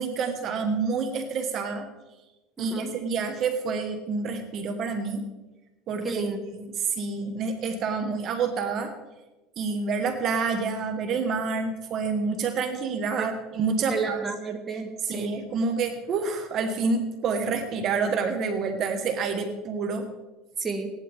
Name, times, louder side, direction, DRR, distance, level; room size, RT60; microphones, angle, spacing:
voice 1, 0.0-1.9 2.6-5.2 5.9-8.9 9.6-14.2 15.1-20.1, right 4 dB, 45° right, 6 dB, 1.6 m, -28 dB
voice 2, 2.6-2.9 6.0-6.4 13.2-13.3 13.9-15.3 20.6-20.9, right 4 dB, 20° right, 3 dB, 1.7 m, -31 dB
17.5 x 11.0 x 3.6 m, 1.1 s
supercardioid pair, 120°, 0 cm